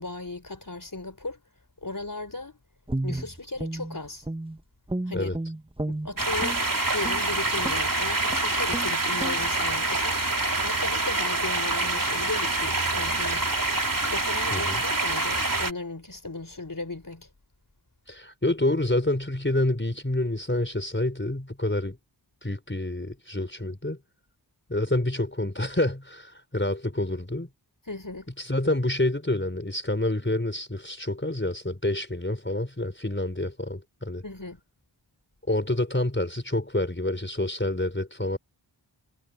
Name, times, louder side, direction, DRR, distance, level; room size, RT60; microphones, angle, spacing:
voice 1, 0.0-1.4 1.8-2.6 3.0-4.3 5.1-5.4 5.9-6.6 6.9-10.2 10.6-13.5 14.1-17.3 27.9-28.3 34.2-34.6, left 2 dB, 45° left, 4.3 m, -36 dB
Guitar, 2.9-4.6 4.9-6.6 7.0-7.2 7.6-7.9 8.3-8.4 8.7-8.9 9.2-9.4, right 1 dB, 10° right, 1.1 m, -32 dB
sound 1, 6.2-15.7, right 2 dB, 45° right, 3.3 m, -26 dB
voice 2, 14.5-14.8 18.1-22.0 22.4-24.0 24.7-27.5 28.4-34.2 35.5-38.4, left 1 dB, 25° left, 4.4 m, -28 dB
wide cardioid pair, 50°, 45 cm